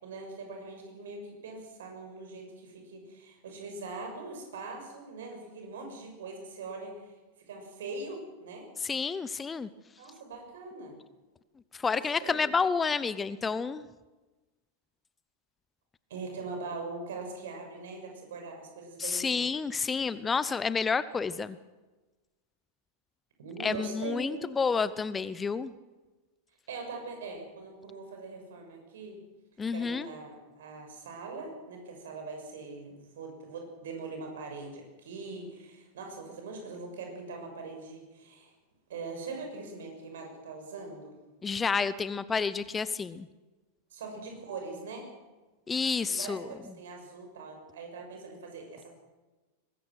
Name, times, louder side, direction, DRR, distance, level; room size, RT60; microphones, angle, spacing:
voice 1, 0.0-7.1 7.5-8.7 10.0-11.0 11.9-12.4 16.1-19.5 23.4-24.5 26.7-29.2 29.7-38.5 38.9-41.1 43.9-45.1 46.1-48.9, right 3 dB, 60° right, 3 dB, 6.5 m, -42 dB
voice 2, 8.8-9.7 11.7-13.8 19.0-21.6 23.6-25.7 29.6-30.1 41.4-43.3 45.7-46.5, left 5 dB, 15° left, 16 dB, 0.7 m, -30 dB
23.0 x 20.5 x 6.3 m, 1.2 s
figure-of-eight pair, 90°, 0 cm